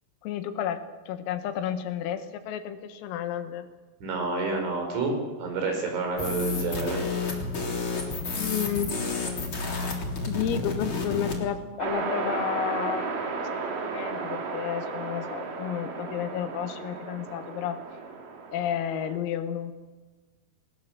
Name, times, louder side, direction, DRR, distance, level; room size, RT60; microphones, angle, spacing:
voice 1, 0.2-3.7 8.4-9.0 10.3-17.8 18.5-19.8, left 9 dB, 85° left, 9 dB, 4.1 m, -32 dB
voice 2, 4.0-7.0, right 3 dB, 65° right, 3 dB, 7.6 m, -29 dB
sound 1, 6.2-11.4, left 3 dB, 30° left, 3.5 m, -30 dB
sound 2, 11.8-19.2, right 4 dB, 50° right, 3.5 m, -34 dB
21.5 x 19.5 x 7.5 m, 1.3 s
omnidirectional pair, 5.9 m